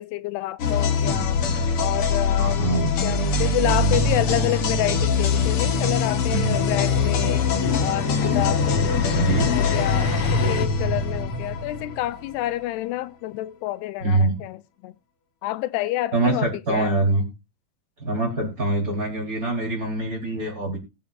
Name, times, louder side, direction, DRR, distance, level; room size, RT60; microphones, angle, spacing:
voice 1, 0.0-1.4 1.8-9.0 9.5-10.1 10.4-14.9 15.4-16.9 18.4-18.5, left 15 dB, 90° left, 2.8 m, -29 dB
sound 1, 0.6-12.3, left 4 dB, 55° left, 1.5 m, -22 dB
voice 2, 2.4-2.9 6.3-6.8 9.0-9.5 14.0-14.4 16.1-17.2 18.0-20.8, right 2 dB, 20° right, 4.5 m, -24 dB
21.5 x 7.3 x 2.5 m
omnidirectional pair, 4.7 m